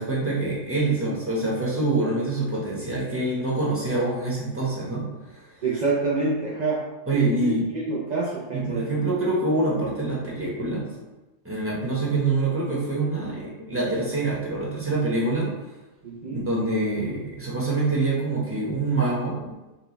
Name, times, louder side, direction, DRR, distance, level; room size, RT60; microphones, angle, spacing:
voice 1, 0.0-5.0 5.3-5.5 7.1-7.7 8.5-10.8 11.4-15.5 16.3-19.5, right 2 dB, 10° right, -6 dB, 1.0 m, -25 dB
voice 2, 5.6-7.5 7.9-8.9 16.0-16.4, right 3 dB, 55° right, -5 dB, 0.4 m, -27 dB
5.9 x 2.4 x 3.0 m, 1.1 s
omnidirectional pair, 1.5 m